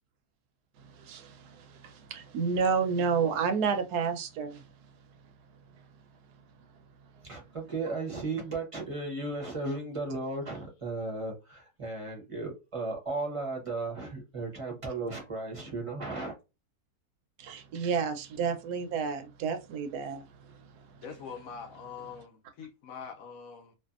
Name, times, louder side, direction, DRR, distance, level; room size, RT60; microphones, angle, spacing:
voice 1, 1.0-4.6 17.4-20.3, right 6 dB, 80° right, 1.2 m, -30 dB
voice 2, 7.3-16.3, right 3 dB, 25° right, 0.8 m, -35 dB
voice 3, 21.0-23.8, left 6 dB, 70° left, 0.9 m, -44 dB
2.6 x 2.5 x 2.4 m
omnidirectional pair, 1.7 m